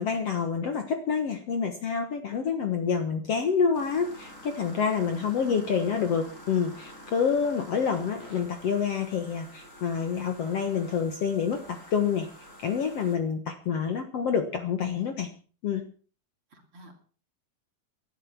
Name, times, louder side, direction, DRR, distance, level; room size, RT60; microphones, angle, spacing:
voice 1, 0.0-12.3 12.6-15.3 15.6-15.8, left 6 dB, 55° left, 6 dB, 2.1 m, -27 dB
sound 1, 3.7-13.2, equal, 20° left, 5.6 m, -48 dB
voice 2, 16.5-16.9, right 2 dB, 40° right, 4 dB, 3.4 m, -48 dB
19.0 x 11.5 x 5.9 m, 0.41 s
omnidirectional pair, 4.0 m